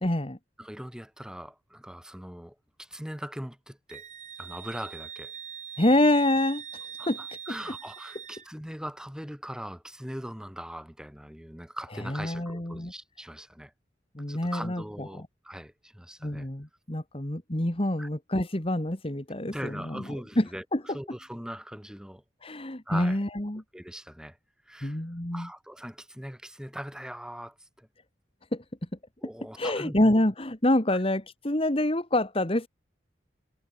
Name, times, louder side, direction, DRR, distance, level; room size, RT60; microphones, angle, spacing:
voice 1, 0.0-0.4 5.8-7.2 12.1-12.9 14.2-14.8 16.2-20.0 20.4-21.0 22.4-23.6 24.8-25.5 28.5-28.6 29.6-32.7, left 1 dB, 30° left, 2.0 m, -26 dB
voice 2, 0.6-4.0 4.4-5.4 7.0-13.7 14.3-16.5 18.0-18.1 19.4-22.2 22.9-23.2 23.7-24.4 24.7-25.0 25.3-27.9 29.2-30.2 30.9-31.0, equal, 5° right, 4.9 m, -41 dB
Wind instrument woodwind instrument, 3.9-8.5, right 8 dB, 40° right, 5.4 m, -42 dB
head